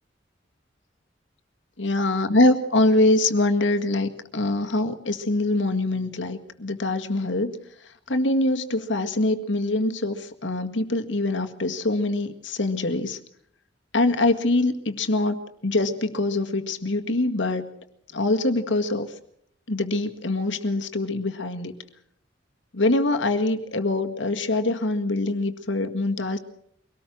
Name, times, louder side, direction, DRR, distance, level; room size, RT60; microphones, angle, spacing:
voice 1, 1.8-7.5 8.1-13.2 13.9-17.7 18.1-19.1 19.7-21.7 22.7-26.4, left 2 dB, 75° left, 6 dB, 1.9 m, -24 dB
24.0 x 18.5 x 6.2 m, 0.69 s
head